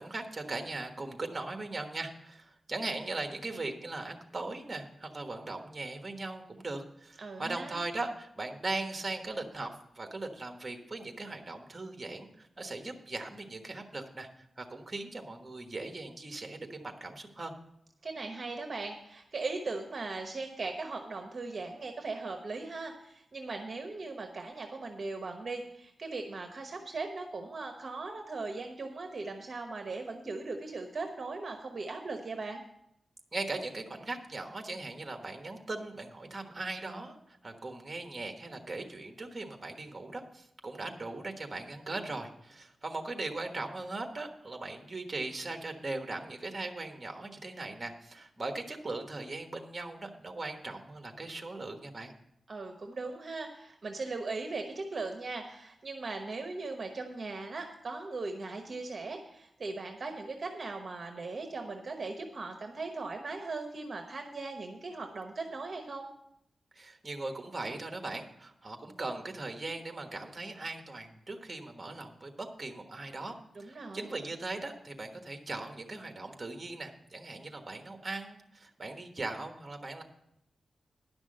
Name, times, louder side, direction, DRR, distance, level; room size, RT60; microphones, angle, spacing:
voice 1, 0.0-17.5 33.3-52.1 66.7-80.0, right 2 dB, 25° right, 5 dB, 1.3 m, -39 dB
voice 2, 7.2-7.8 18.0-32.6 52.5-66.1 73.5-74.1, right 3 dB, 45° right, 4 dB, 1.0 m, -39 dB
10.5 x 6.1 x 7.6 m, 0.79 s
wide cardioid pair, 125°, 0 cm